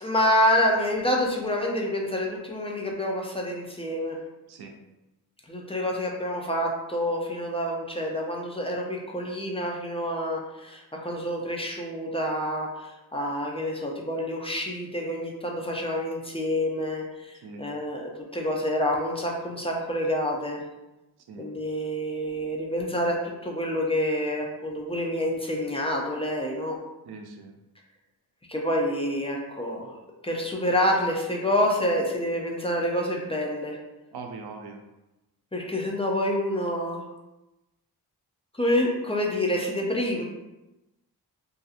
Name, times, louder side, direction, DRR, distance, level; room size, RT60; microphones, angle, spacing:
voice 1, 0.0-4.2 5.5-20.6 21.4-26.8 28.5-30.0 30.2-33.8 35.5-37.1 38.5-40.2, left 1 dB, 15° left, -1 dB, 0.5 m, -27 dB
voice 2, 27.1-27.5 34.1-34.8, right 4 dB, 85° right, 3 dB, 0.5 m, -41 dB
2.6 x 2.6 x 2.4 m, 0.99 s
cardioid pair, 70°, 38 cm